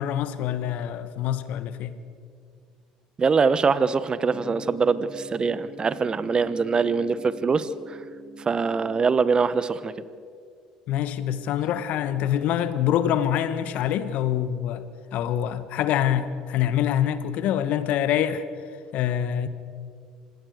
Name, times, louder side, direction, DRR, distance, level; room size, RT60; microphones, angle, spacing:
voice 1, 0.0-2.0 10.9-14.8 15.1-18.4 18.9-19.5, left 10 dB, 60° left, 1.5 m, -25 dB
voice 2, 3.2-8.0 8.4-9.9, right 5 dB, 30° right, 1.2 m, -23 dB
sound 1, 4.3-9.4, right 2 dB, 25° left, 2.4 m, -43 dB
26.0 x 19.5 x 6.6 m
hypercardioid pair, 65°, 3 cm